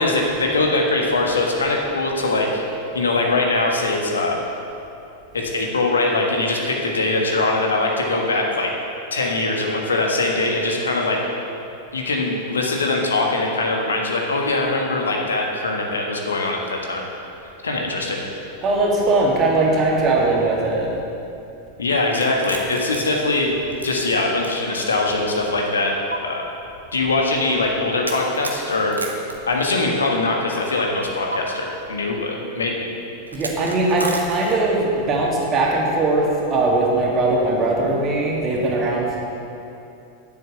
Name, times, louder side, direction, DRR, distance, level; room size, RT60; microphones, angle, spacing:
voice 1, 0.0-2.6 2.9-4.4 5.3-8.7 9.1-11.2 11.9-17.0 17.6-18.2 21.8-23.5 23.8-25.9 26.2-26.4 26.9-29.0 29.5-32.8, left 2 dB, 70° left, 0 dB, 1.4 m, -22 dB
voice 2, 18.6-20.9 33.3-39.2, right 2 dB, 30° right, -3 dB, 2.3 m, -20 dB
sound 1, 22.1-24.8 25.1-25.2 26.1-26.2 28.0-30.2 31.3-31.4 33.3-34.8, right 2 dB, 80° right, 1.0 m, -32 dB
10.0 x 7.5 x 6.8 m, 2.8 s
figure-of-eight pair, 90°, 0 cm